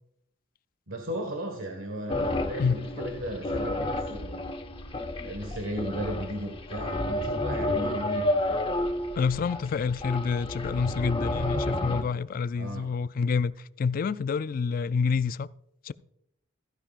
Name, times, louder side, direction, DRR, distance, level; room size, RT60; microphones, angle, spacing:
voice 1, 0.9-4.4 5.2-8.3 12.5-12.9, equal, 80° right, 1.6 m, -35 dB
sound 1, 2.1-12.0, left 1 dB, 25° left, 0.7 m, -31 dB
voice 2, 9.2-15.5 15.8-15.9, left 5 dB, 45° left, 0.3 m, -28 dB
15.0 x 9.9 x 2.4 m
head